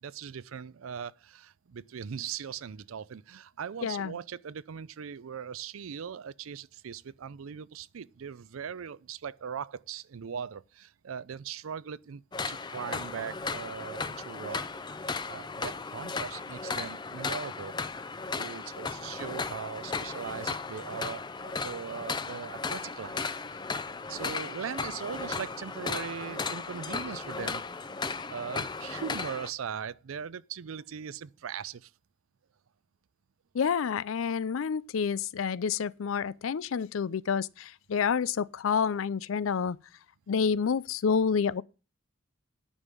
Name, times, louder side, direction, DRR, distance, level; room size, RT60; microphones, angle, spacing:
voice 1, 0.0-12.2 12.5-17.8 18.3-23.2 24.1-27.7 28.1-31.9, right 7 dB, 90° right, 0.5 m, -40 dB
voice 2, 3.8-4.1 33.5-39.8 40.3-41.6, left 6 dB, 85° left, 0.4 m, -28 dB
sound 1, 12.3-29.5, left 4 dB, 20° left, 0.5 m, -36 dB
9.9 x 5.5 x 7.4 m
head